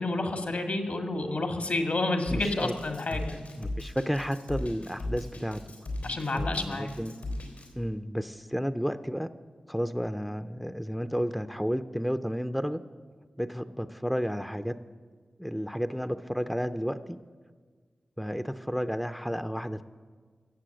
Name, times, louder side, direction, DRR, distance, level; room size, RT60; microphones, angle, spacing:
voice 1, 0.0-3.4 6.0-6.9, left 2 dB, 65° left, 5 dB, 1.8 m, -30 dB
Drum kit, 2.3-7.7, left 1 dB, 90° left, 3.6 m, -36 dB
voice 2, 2.3-2.7 3.1-3.2 3.6-5.6 6.0-7.1 7.8-9.3 9.7-12.8 13.4-14.7 15.4-17.2 18.2-19.8, equal, ahead, 10 dB, 0.5 m, -32 dB
16.5 x 7.4 x 7.7 m, 1.5 s
cardioid pair, 55°, 3 cm